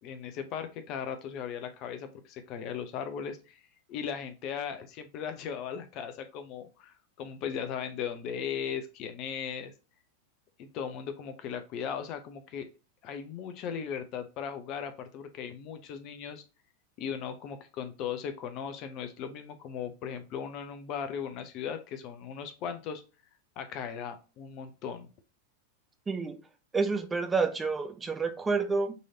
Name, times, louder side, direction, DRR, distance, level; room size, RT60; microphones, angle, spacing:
voice 1, 0.0-3.6 3.9-9.7 10.6-12.7 13.0-16.4 17.0-23.0 23.6-25.1, left 7 dB, 40° left, 0.7 m, -37 dB
voice 2, 26.1-26.4 26.7-28.9, right 4 dB, 15° right, 0.5 m, -29 dB
3.9 x 3.1 x 2.6 m
figure-of-eight pair, 90°, 0 cm